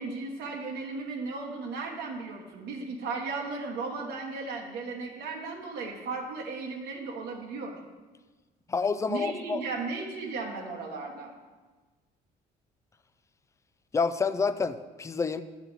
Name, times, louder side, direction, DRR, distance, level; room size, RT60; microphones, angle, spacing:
voice 1, 0.0-7.8 9.1-11.3, right 4 dB, 80° right, 0 dB, 1.1 m, -36 dB
voice 2, 8.7-9.6 13.9-15.4, left 5 dB, 15° left, 13 dB, 0.4 m, -28 dB
8.1 x 6.3 x 4.0 m, 1.3 s
cardioid pair, 110°, 17 cm